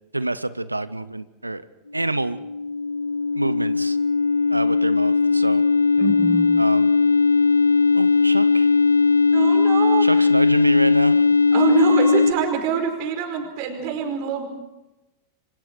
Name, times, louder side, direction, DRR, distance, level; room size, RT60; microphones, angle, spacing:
voice 1, 0.1-1.6 1.9-2.4 3.3-4.0 4.5-5.6 6.6-6.9 7.9-8.7 10.0-11.3, right 2 dB, 85° right, 16 dB, 0.7 m, -26 dB
sound 1, 2.1-12.3, left 4 dB, 80° left, 0.7 m, -18 dB
voice 2, 6.0-6.5 9.3-10.3 11.5-14.5, right 6 dB, 45° right, 5 dB, 5.0 m, -25 dB
28.5 x 25.0 x 4.7 m, 0.97 s
figure-of-eight pair, 90°, 0 cm